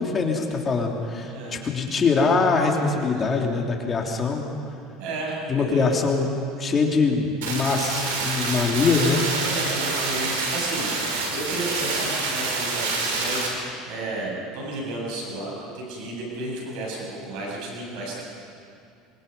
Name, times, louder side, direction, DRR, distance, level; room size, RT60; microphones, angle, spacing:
voice 1, 0.0-4.5 5.5-6.3 6.6-9.3, left 4 dB, 30° left, 1 dB, 3.1 m, -23 dB
voice 2, 1.2-1.7 3.1-3.3 5.0-5.9 9.4-18.2, right 2 dB, 65° right, -2 dB, 7.9 m, -33 dB
sound 1, 7.4-13.5, right 3 dB, 90° right, 5.5 m, -27 dB
25.5 x 24.0 x 5.5 m, 2.4 s
supercardioid pair, 120°, 0 cm